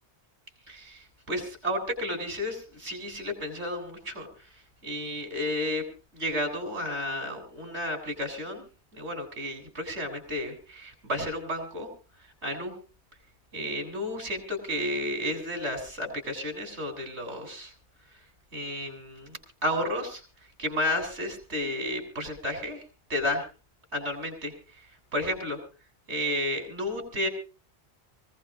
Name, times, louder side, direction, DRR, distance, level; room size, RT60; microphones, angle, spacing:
voice 1, 0.7-4.3 4.8-5.8 6.1-8.6 8.9-11.9 12.4-12.7 13.5-17.7 18.5-20.2 20.6-22.8 23.1-23.5 23.9-24.5 25.1-25.6 26.1-27.3, left 1 dB, 85° right, 4 dB, 3.8 m, -32 dB
24.0 x 16.5 x 2.5 m, 0.33 s
omnidirectional pair, 1.1 m